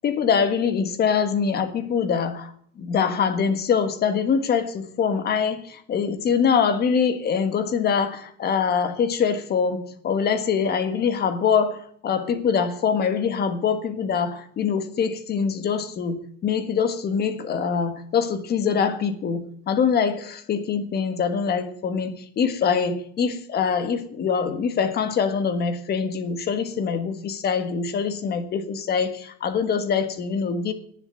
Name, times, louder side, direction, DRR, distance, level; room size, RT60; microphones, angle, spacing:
voice 1, 0.0-2.5 2.8-16.2 16.4-30.7, left 6 dB, 25° left, 10 dB, 1.6 m, -24 dB
18.5 x 7.5 x 7.7 m, 0.63 s
cardioid pair, 170°, 36 cm